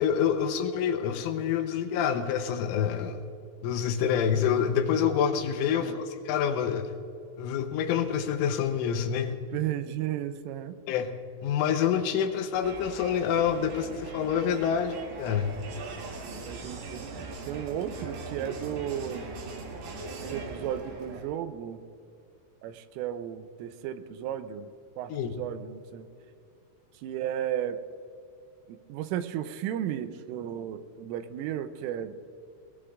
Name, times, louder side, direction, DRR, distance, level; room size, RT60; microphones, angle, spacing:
voice 1, 0.0-3.2 3.6-6.9 7.4-9.4 10.9-11.1 11.4-15.5 25.1-25.3, left 8 dB, 80° left, 7 dB, 3.2 m, -27 dB
voice 2, 9.5-10.8 16.5-19.3 20.3-21.8 22.6-24.7 25.0-26.1 27.0-27.8 28.7-32.1, right 10 dB, 85° right, 10 dB, 3.2 m, -34 dB
Crowd, 12.5-21.4, right 3 dB, 65° right, 3.6 m, -40 dB
20.5 x 20.0 x 2.5 m, 2.6 s
omnidirectional pair, 5.8 m